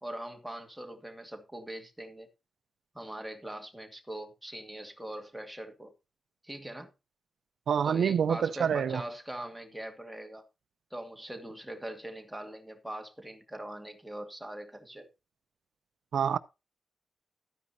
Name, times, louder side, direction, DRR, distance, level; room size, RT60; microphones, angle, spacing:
voice 1, 0.0-2.3 2.9-5.9 6.4-6.9 7.8-10.4 10.9-15.1, right 1 dB, 5° right, 2.3 m, -42 dB
voice 2, 7.7-9.0 16.1-16.4, right 7 dB, 90° right, 0.6 m, -27 dB
13.5 x 9.6 x 2.8 m
wide cardioid pair, 160°, 0 cm